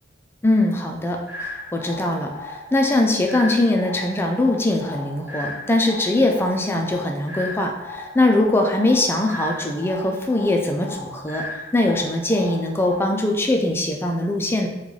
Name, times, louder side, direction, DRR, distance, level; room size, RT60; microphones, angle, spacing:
voice 1, 0.4-11.4 11.7-14.7, left 2 dB, 15° left, 2 dB, 0.4 m, -21 dB
sound 1, 1.3-13.3, left 2 dB, 5° right, 1.2 m, -37 dB
3.8 x 2.3 x 3.2 m, 0.98 s
head